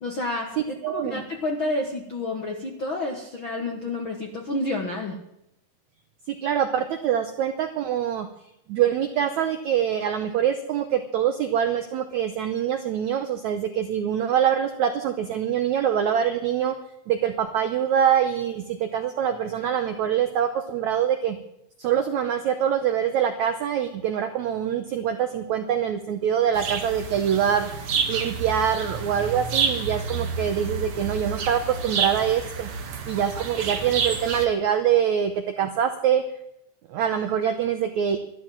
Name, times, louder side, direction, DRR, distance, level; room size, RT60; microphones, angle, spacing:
voice 1, 0.0-5.2, left 2 dB, 70° left, 2 dB, 1.1 m, -29 dB
voice 2, 0.8-1.2 6.3-8.3 8.7-16.7 17.1-21.4 21.8-27.7 28.1-32.7 33.1-36.2 36.9-38.2, right 9 dB, 85° right, 7 dB, 1.6 m, -24 dB
sound 1, 26.5-34.5, right 5 dB, 55° right, 1.6 m, -29 dB
12.5 x 12.0 x 7.5 m, 0.79 s
omnidirectional pair, 4.5 m